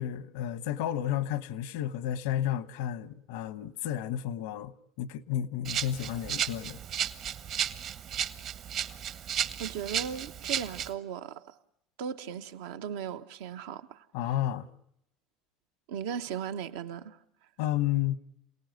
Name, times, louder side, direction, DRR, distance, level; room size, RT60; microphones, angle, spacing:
voice 1, 0.0-6.8 14.1-14.7 17.6-18.2, left 11 dB, 80° left, 1.2 m, -32 dB
Rattle (instrument), 5.6-10.9, right 9 dB, 55° right, 1.2 m, -34 dB
voice 2, 9.6-11.6 12.0-14.0 15.9-17.2, right 8 dB, 80° right, 1.1 m, -37 dB
28.0 x 18.5 x 9.4 m
supercardioid pair, 100°, 0 cm